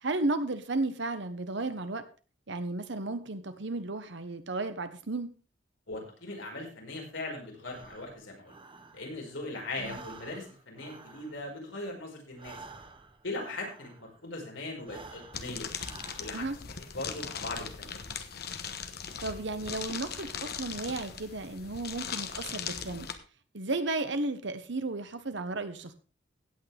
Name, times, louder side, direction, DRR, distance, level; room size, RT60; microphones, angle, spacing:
voice 1, 0.0-2.0 2.5-5.3 9.8-10.0 16.3-16.6 19.2-23.1 23.5-25.9, right 2 dB, 70° right, 10 dB, 1.3 m, -34 dB
voice 2, 5.9-8.6 8.9-12.6 13.2-15.7 16.2-16.4 16.9-18.1, left 2 dB, 80° left, 0 dB, 5.1 m, -39 dB
Breathing, 7.6-9.4 9.7-14.3 14.8-16.7, right 3 dB, 25° right, 1.2 m, -51 dB
sound 1, 15.3-23.1, left 7 dB, 55° left, 1.2 m, -39 dB
16.5 x 8.7 x 3.5 m, 0.36 s
head